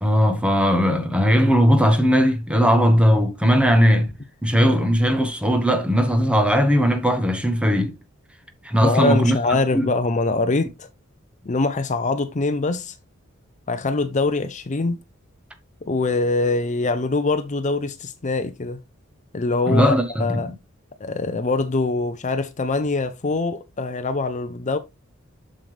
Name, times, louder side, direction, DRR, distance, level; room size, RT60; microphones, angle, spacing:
voice 1, 0.0-4.1 4.4-7.9 8.6-9.4 9.7-9.9 19.7-20.5, equal, 5° right, 1.1 m, -18 dB
voice 2, 8.8-10.9 11.4-13.0 13.7-15.0 15.8-18.8 19.3-19.9 20.2-20.5 21.0-24.8, left 3 dB, 35° left, 0.6 m, -23 dB
7.3 x 6.6 x 3.2 m
head